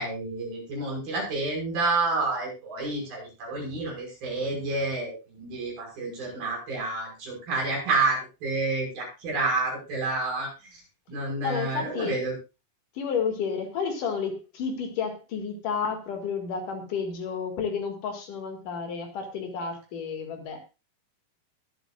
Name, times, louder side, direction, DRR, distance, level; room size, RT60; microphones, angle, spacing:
voice 1, 0.0-10.8 11.1-12.3, right 3 dB, 85° right, -1 dB, 7.4 m, -29 dB
voice 2, 11.4-12.2 13.0-20.6, left 6 dB, 65° left, 4 dB, 3.5 m, -31 dB
21.5 x 8.2 x 2.4 m, 0.29 s
omnidirectional pair, 4.1 m